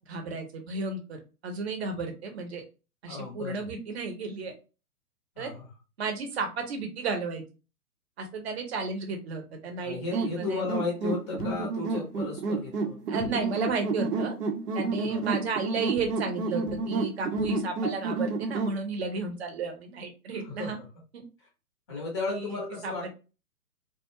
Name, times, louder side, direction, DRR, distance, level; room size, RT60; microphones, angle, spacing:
voice 1, 0.1-1.2 1.4-2.6 3.0-4.5 5.4-5.5 6.0-7.4 8.2-10.6 13.1-14.3 14.7-20.8 22.3-22.6 22.8-22.9, right 4 dB, 45° right, 4 dB, 0.7 m, -33 dB
voice 2, 3.1-3.7 5.4-5.7 9.8-13.0 15.0-15.3 20.4-20.9 21.9-23.1, left 3 dB, 20° left, -1 dB, 0.5 m, -34 dB
sound 1, 10.1-18.8, right 3 dB, 75° right, 0.7 m, -30 dB
Heavy Wall Pounding, 11.4-12.1 13.2-13.6 16.0-17.8, left 3 dB, 80° left, 0.7 m, -44 dB
2.3 x 2.0 x 2.8 m, 0.32 s
figure-of-eight pair, 125°, 47 cm